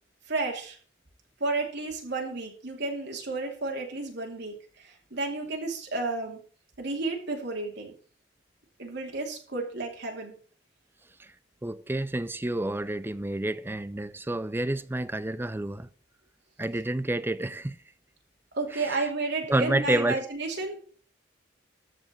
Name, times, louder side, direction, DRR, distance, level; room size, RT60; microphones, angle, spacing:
voice 1, 0.3-0.8 1.4-6.4 6.8-7.9 8.8-10.3 18.5-20.8, right 3 dB, 60° right, 2.8 m, -32 dB
voice 2, 11.6-15.9 16.6-17.8 18.7-19.0 19.5-20.2, right 1 dB, 10° right, 0.4 m, -29 dB
13.5 x 5.2 x 7.8 m
head